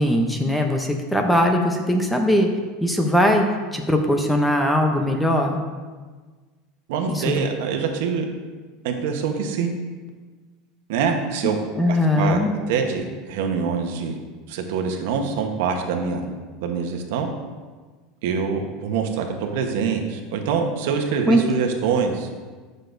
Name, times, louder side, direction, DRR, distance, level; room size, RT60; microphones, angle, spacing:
voice 1, 0.0-2.5 2.8-3.5 3.7-5.6 7.1-7.5 11.7-12.5 21.3-21.4, left 1 dB, 5° left, 3 dB, 0.7 m, -20 dB
voice 2, 6.9-8.3 8.8-9.7 10.9-11.6 11.9-12.4 12.7-14.2 14.5-16.2 16.6-17.3 18.2-22.3, right 6 dB, 75° right, 4 dB, 1.0 m, -24 dB
9.6 x 6.5 x 2.6 m, 1.4 s
supercardioid pair, 145°, 0 cm